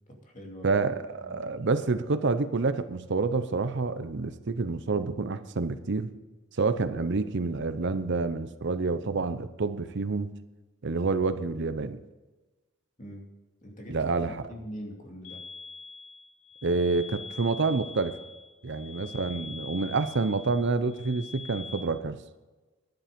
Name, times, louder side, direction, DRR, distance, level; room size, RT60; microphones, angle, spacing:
voice 1, 0.1-0.8 1.2-1.5 13.0-13.3 13.6-15.4, equal, 40° left, 1 dB, 2.6 m, -43 dB
voice 2, 0.6-6.1 6.5-10.3 10.8-12.0 13.9-14.4 16.6-18.2 18.6-22.2, right 3 dB, 60° right, 12 dB, 0.7 m, -28 dB
sound 1, 15.2-21.8, left 4 dB, 80° left, 1.8 m, -44 dB
11.5 x 10.5 x 5.2 m, 1.2 s
head